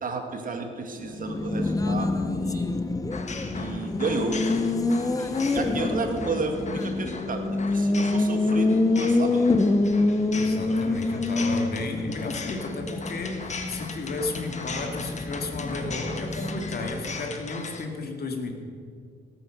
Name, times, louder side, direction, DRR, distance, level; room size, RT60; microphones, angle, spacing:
voice 1, 0.0-2.8 3.5-4.4 4.9-9.6, right 3 dB, 45° right, 4 dB, 2.3 m, -32 dB
Race car auto racing, 1.0-17.3, left 2 dB, 15° left, 0.7 m, -26 dB
sound 1, 3.1-17.9, left 4 dB, 35° left, 1.6 m, -39 dB
voice 2, 10.4-18.5, left 2 dB, 50° left, 3 dB, 2.4 m, -33 dB
17.0 x 9.3 x 6.6 m, 2.3 s
cardioid pair, 90°, 20 cm